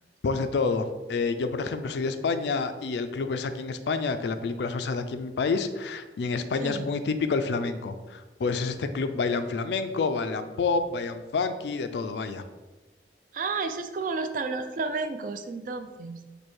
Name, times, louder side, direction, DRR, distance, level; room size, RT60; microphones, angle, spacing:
voice 1, 0.2-12.4, left 4 dB, 75° left, 10 dB, 0.4 m, -28 dB
voice 2, 13.3-16.2, right 4 dB, 45° right, 8 dB, 0.3 m, -31 dB
4.6 x 2.7 x 4.3 m, 1.2 s
head